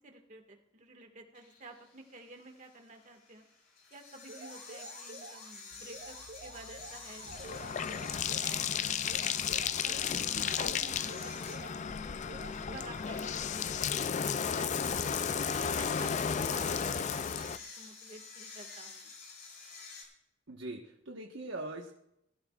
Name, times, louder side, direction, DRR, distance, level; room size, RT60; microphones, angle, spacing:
voice 1, 0.0-3.5 3.9-9.4 9.8-14.7 15.2-19.2, right 2 dB, 40° right, 4 dB, 1.8 m, -52 dB
sound 1, 1.3-20.0, left 4 dB, 55° left, 5.8 m, -50 dB
sound 2, 4.3-5.5 5.9-8.7 9.1-11.9 12.3-13.9, right 3 dB, 65° right, 2.2 m, -49 dB
Bathtub (filling or washing), 6.2-17.6, left 7 dB, 40° left, 0.4 m, -34 dB
voice 2, 20.5-21.9, right 2 dB, 85° right, 1 dB, 1.3 m, -41 dB
21.0 x 14.5 x 2.4 m, 0.79 s
head